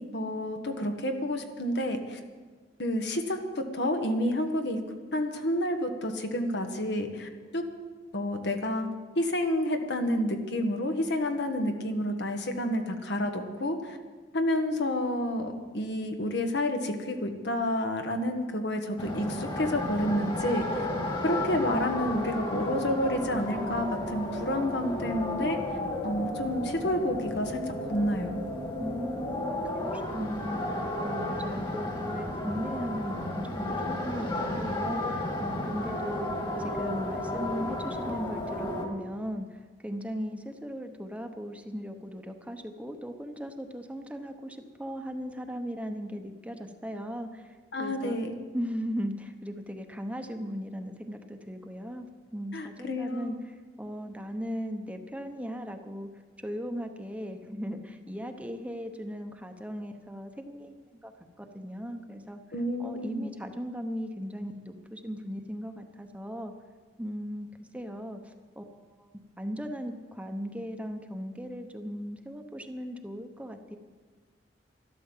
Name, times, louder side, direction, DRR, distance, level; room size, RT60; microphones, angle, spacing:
voice 1, 0.1-2.2 2.8-4.8 5.1-7.6 8.1-8.9 9.1-14.0 14.3-20.9 21.2-25.6 26.0-28.4 47.7-48.3 52.5-53.4 62.5-63.3, left 1 dB, 65° left, 5 dB, 1.5 m, -29 dB
sound 1, 19.0-38.9, left 1 dB, 25° left, 2.0 m, -33 dB
voice 2, 28.8-48.2 48.5-52.1 52.3-56.1 56.4-60.7 61.0-61.1 61.4-62.4 62.8-66.5 67.0-68.7 69.0-69.1 69.4-73.8, equal, 10° right, 6 dB, 0.9 m, -38 dB
12.5 x 12.5 x 7.4 m, 1.4 s
head